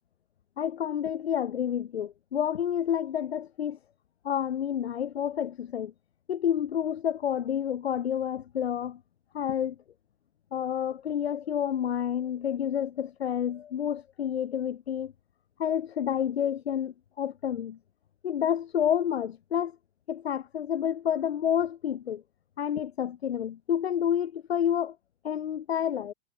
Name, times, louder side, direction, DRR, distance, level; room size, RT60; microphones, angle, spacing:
voice 1, 0.6-3.8 4.2-5.9 6.3-9.0 9.3-9.8 10.5-15.1 15.6-17.8 18.2-19.8 20.1-22.2 22.6-25.0 25.2-26.1, left 9 dB, 75° left, 1.0 m, -29 dB
figure-of-eight pair, 105°, 32 cm